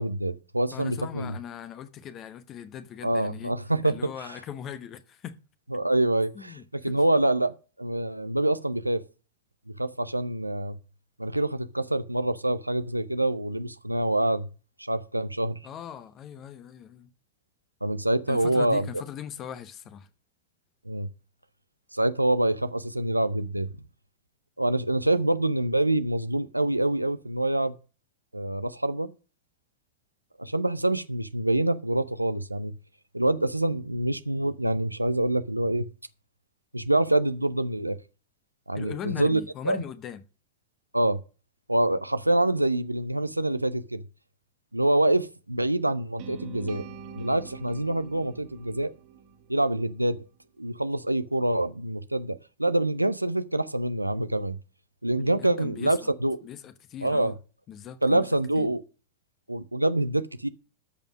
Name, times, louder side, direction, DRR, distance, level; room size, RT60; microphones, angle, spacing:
voice 1, 0.0-1.4 3.0-4.1 5.7-9.0 9.8-10.8 11.2-14.5 14.8-15.6 17.8-18.9 20.9-21.1 21.9-23.7 24.6-27.8 28.3-29.1 30.4-32.7 33.1-35.9 36.7-38.0 38.7-39.4 39.7-39.8 40.9-41.2 41.7-44.0 44.7-46.9 47.2-48.9 49.5-50.3 50.6-54.6 55.0-56.4 57.0-57.3 58.0-58.8 59.5-60.5, right 1 dB, 85° right, 0.6 m, -26 dB
voice 2, 0.7-3.5 3.8-5.4 6.3-7.0 15.6-17.1 18.3-20.1 38.7-40.2 55.1-56.1 56.4-57.3 57.7-58.3 58.5-58.7, left 9 dB, 30° left, 1.0 m, -40 dB
sound 1, 46.2-50.3, right 7 dB, 45° right, 1.2 m, -44 dB
13.5 x 5.4 x 6.1 m
figure-of-eight pair, 90°, 0 cm